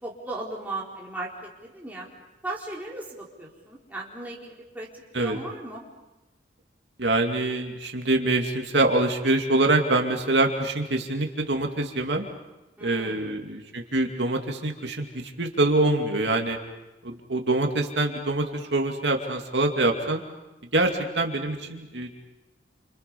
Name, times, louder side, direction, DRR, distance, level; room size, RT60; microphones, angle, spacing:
voice 1, 0.0-2.1 2.4-4.9 5.2-5.8 12.8-13.4, right 2 dB, 10° right, -4 dB, 4.2 m, -37 dB
voice 2, 7.0-12.3 12.8-15.1 15.4-16.6 17.0-20.2 20.7-22.1, right 2 dB, 75° right, 3 dB, 2.5 m, -25 dB
29.0 x 27.0 x 5.5 m, 1.0 s
head